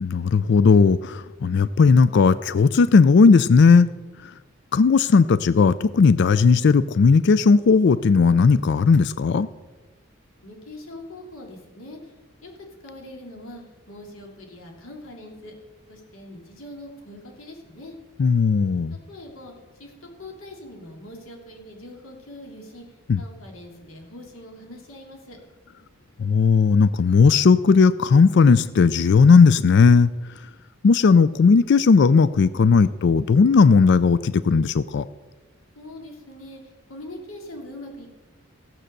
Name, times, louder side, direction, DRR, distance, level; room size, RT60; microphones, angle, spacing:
voice 1, 0.0-3.9 4.7-9.5 18.2-19.0 23.1-23.2 26.2-30.1 30.8-35.1, left 5 dB, 55° left, 16 dB, 0.4 m, -16 dB
voice 2, 10.3-12.0 12.4-12.5 12.8-13.6 13.9-15.5 15.9-17.9 19.1-19.5 19.8-22.8 23.2-25.4 35.8-38.1, left 1 dB, 80° left, 1 dB, 2.9 m, -42 dB
15.5 x 7.6 x 6.7 m, 1.2 s
head